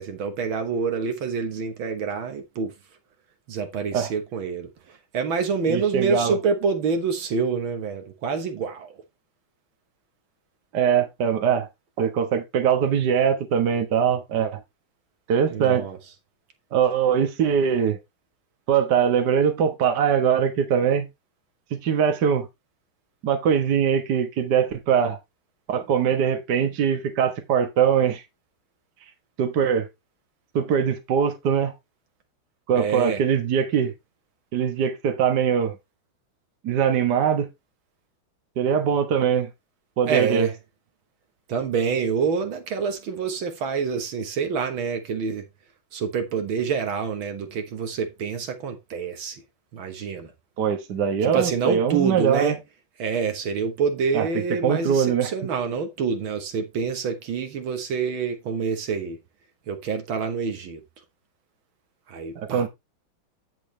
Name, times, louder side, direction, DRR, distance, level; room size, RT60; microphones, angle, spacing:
voice 1, 0.0-2.7 3.5-8.9 15.5-16.0 32.7-33.2 40.1-40.5 41.5-45.4 45.9-49.4 49.7-50.3 51.2-52.6 53.0-59.2 59.7-60.8 62.1-62.7, right 5 dB, 70° right, 2.0 m, -27 dB
voice 2, 5.7-6.4 10.7-11.7 12.0-14.6 15.3-15.9 16.7-18.0 18.7-21.1 21.8-22.5 23.2-25.2 25.7-28.2 29.4-29.9 30.6-31.7 32.7-33.9 34.5-35.8 36.6-37.5 38.6-39.5 40.0-40.5 50.6-52.6 54.1-55.3 62.4-62.7, right 7 dB, 55° right, 1.7 m, -22 dB
8.4 x 7.1 x 3.2 m
omnidirectional pair, 2.3 m